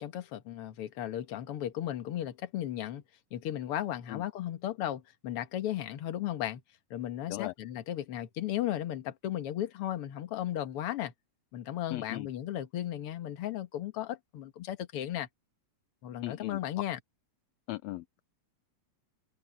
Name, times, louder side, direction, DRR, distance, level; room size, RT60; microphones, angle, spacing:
voice 1, 0.0-3.0 3.3-6.6 6.9-11.1 11.5-15.3 16.0-17.0, left 12 dB, 55° left, 1.9 m, -35 dB
voice 2, 11.9-12.3 16.2-16.6 17.7-18.2, left 18 dB, 75° left, 1.7 m, -38 dB
omnidirectional pair, 3.5 m